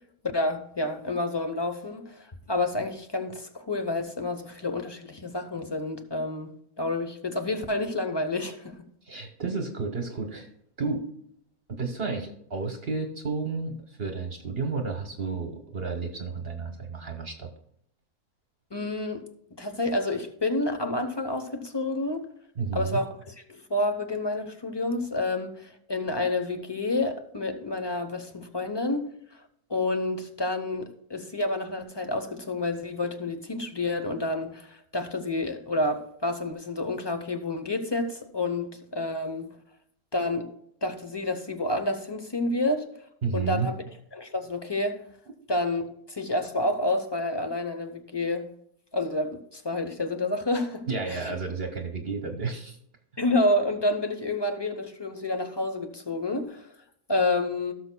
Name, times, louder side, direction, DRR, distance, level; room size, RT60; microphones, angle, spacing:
voice 1, 0.3-6.5 6.8-8.8 18.7-19.2 19.6-22.3 22.7-29.0 29.7-39.5 40.1-40.5 40.8-42.9 43.3-43.8 44.1-45.0 45.5-48.5 48.9-51.3 53.2-56.7 57.1-57.7, left 2 dB, 20° left, 0.7 m, -29 dB
voice 2, 9.0-10.5 10.8-11.1 11.7-17.5 22.6-23.0 43.2-43.7 50.9-52.8, right 4 dB, 45° right, 1.2 m, -31 dB
17.0 x 6.6 x 2.2 m
omnidirectional pair, 1.5 m